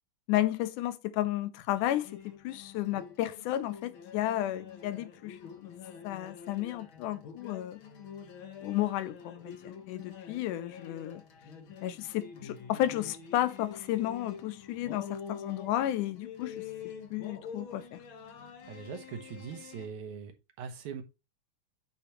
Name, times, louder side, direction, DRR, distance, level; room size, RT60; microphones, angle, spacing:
voice 1, 0.3-5.7 6.0-7.8 8.6-11.2 11.8-16.6 17.1-18.0, left 13 dB, 85° left, 2.1 m, -33 dB
sound 1, 1.7-19.9, left 7 dB, 55° left, 1.6 m, -46 dB
voice 2, 18.7-21.0, right 6 dB, 70° right, 2.6 m, -41 dB
8.8 x 5.1 x 3.0 m
omnidirectional pair, 3.6 m